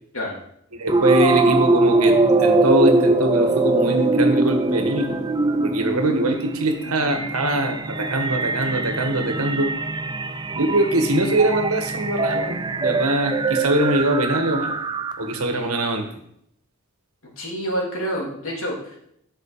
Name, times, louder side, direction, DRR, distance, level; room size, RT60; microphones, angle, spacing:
voice 1, 0.7-5.2 5.6-9.7 10.6-14.8 15.2-16.0, right 1 dB, 85° right, 5 dB, 1.7 m, -22 dB
sound 1, 0.9-15.4, right 2 dB, 20° right, 0.5 m, -22 dB
voice 2, 17.4-19.0, equal, 65° left, -3 dB, 3.2 m, -28 dB
12.0 x 6.1 x 5.1 m, 0.72 s
head